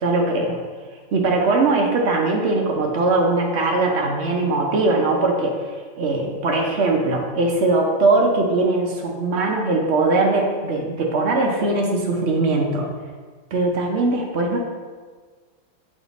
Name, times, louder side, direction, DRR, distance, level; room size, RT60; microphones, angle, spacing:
voice 1, 0.0-0.6 1.1-5.6 6.0-12.9 13.5-14.6, right 2 dB, 75° right, 0 dB, 0.6 m, -20 dB
7.2 x 3.3 x 4.0 m, 1.5 s
omnidirectional pair, 2.0 m